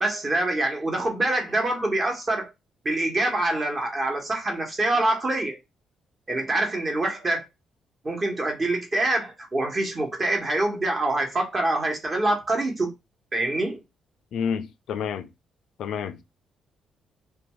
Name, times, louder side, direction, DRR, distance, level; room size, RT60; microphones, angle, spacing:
voice 1, 0.0-2.5 2.8-5.6 6.3-7.4 8.0-12.9 13.3-13.8, right 2 dB, 35° right, 1.1 m, -25 dB
voice 2, 14.3-15.3 15.8-16.2, left 7 dB, 75° left, 0.3 m, -29 dB
2.6 x 2.3 x 3.0 m
cardioid pair, 90°, 0 cm